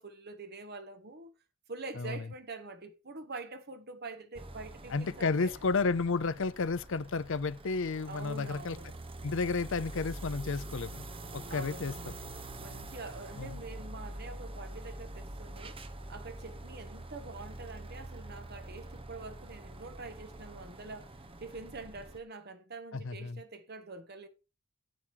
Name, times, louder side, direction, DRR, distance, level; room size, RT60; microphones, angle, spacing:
voice 1, 0.0-1.3 1.7-5.6 8.1-8.9 11.5-12.2 12.6-24.3, right 3 dB, 45° right, 1.4 m, -45 dB
sound 1, 4.3-22.2, right 1 dB, 25° right, 0.9 m, -45 dB
voice 2, 4.9-8.8 9.2-11.0 11.3-11.9 13.4-13.6 22.9-23.4, left 4 dB, 60° left, 0.6 m, -32 dB
9.1 x 7.4 x 4.6 m
head